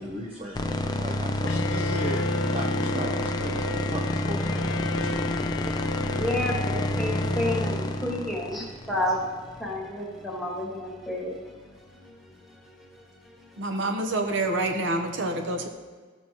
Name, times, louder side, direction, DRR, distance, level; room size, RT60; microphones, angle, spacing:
voice 1, 0.0-4.8 5.3-5.9, equal, 30° right, -3 dB, 0.9 m, -37 dB
sound 1, 0.5-9.7, left 1 dB, 20° left, 0.5 m, -28 dB
Bowed string instrument, 1.5-8.4, left 3 dB, 80° left, 0.4 m, -34 dB
voice 2, 6.1-9.2 9.6-11.4, left 1 dB, ahead, -5 dB, 2.1 m, -30 dB
voice 3, 13.6-15.7, right 2 dB, 75° right, 4 dB, 0.9 m, -27 dB
14.0 x 7.1 x 3.0 m, 1.4 s
head